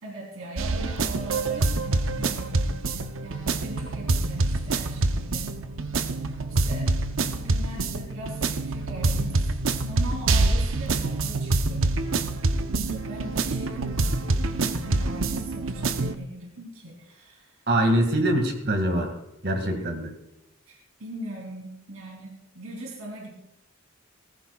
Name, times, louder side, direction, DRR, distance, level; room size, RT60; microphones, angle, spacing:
voice 1, 0.0-5.6 6.6-6.9 7.2-11.9 12.9-17.6 19.7-19.9 20.7-23.4, right 1 dB, 85° right, -1 dB, 3.2 m, -40 dB
sound 1, 0.6-16.1, right 3 dB, 70° right, 0.8 m, -26 dB
voice 2, 17.7-19.1 19.4-20.1, right 1 dB, 55° right, 4 dB, 2.1 m, -23 dB
19.0 x 15.0 x 2.4 m, 0.89 s
head